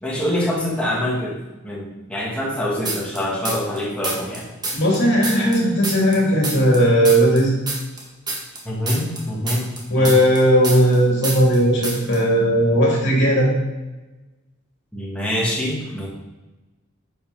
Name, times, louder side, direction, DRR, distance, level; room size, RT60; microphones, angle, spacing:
voice 1, 0.0-1.4 1.6-4.5 8.7-9.6 10.0-10.2 14.9-16.1, left 1 dB, 5° left, -4 dB, 1.9 m, -25 dB
sound 1, 2.9-3.8 4.0-6.8 7.1-11.0 11.2-11.6 11.8-12.2, right 2 dB, 20° right, 1.5 m, -28 dB
voice 2, 4.7-7.5 9.9-13.5, equal, 55° left, -2 dB, 2.8 m, -17 dB
8.5 x 5.7 x 5.5 m, 1.1 s
head